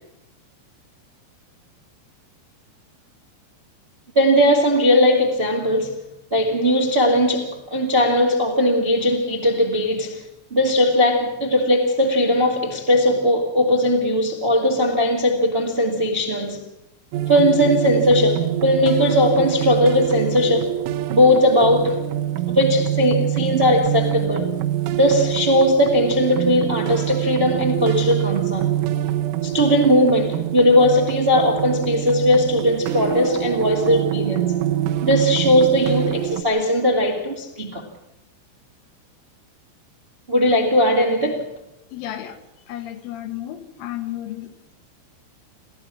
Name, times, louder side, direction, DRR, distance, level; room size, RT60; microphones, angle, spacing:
voice 1, 4.1-5.9 6.3-10.2 10.5-16.6 17.3-20.8 21.1-22.0 22.5-24.5 24.9-28.7 29.4-34.4 35.0-37.8 40.3-41.4, left 1 dB, 30° right, 1.0 m, -18 dB
sound 1, 17.1-36.4, right 12 dB, 85° right, 3.5 m, -25 dB
voice 2, 41.9-42.4 42.7-44.7, left 13 dB, 90° left, 3.9 m, -33 dB
30.0 x 14.5 x 6.2 m
omnidirectional pair, 5.5 m